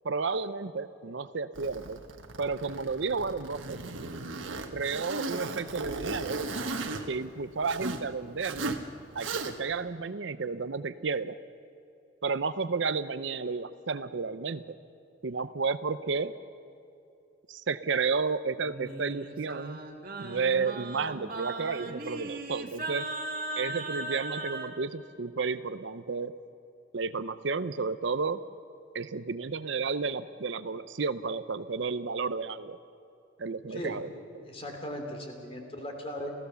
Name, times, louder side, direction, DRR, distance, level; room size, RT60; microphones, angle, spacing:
voice 1, 0.0-2.0 2.4-3.8 4.7-6.4 7.0-8.8 9.1-11.4 12.2-14.8 15.2-16.3 17.5-19.8 20.2-23.1 23.6-26.3 26.9-28.4 28.9-32.8 33.4-34.1, right 4 dB, 70° right, 13 dB, 0.7 m, -32 dB
Zipper (clothing), 1.6-8.1 8.4-8.8 9.2-9.8, right 3 dB, 90° right, 1.4 m, -36 dB
Singing, 18.6-24.7, right 2 dB, 50° right, 1.8 m, -38 dB
voice 2, 34.4-36.3, equal, 30° left, 3 dB, 2.9 m, -38 dB
29.0 x 15.5 x 6.9 m, 2.6 s
head